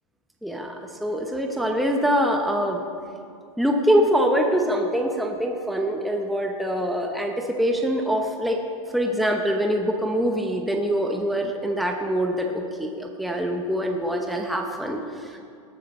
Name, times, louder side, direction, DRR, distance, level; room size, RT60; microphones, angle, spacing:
voice 1, 0.4-2.8 3.6-8.6 8.9-15.4, equal, ahead, 2 dB, 0.8 m, -24 dB
19.0 x 8.3 x 5.4 m, 2.4 s
hypercardioid pair, 140°, 18 cm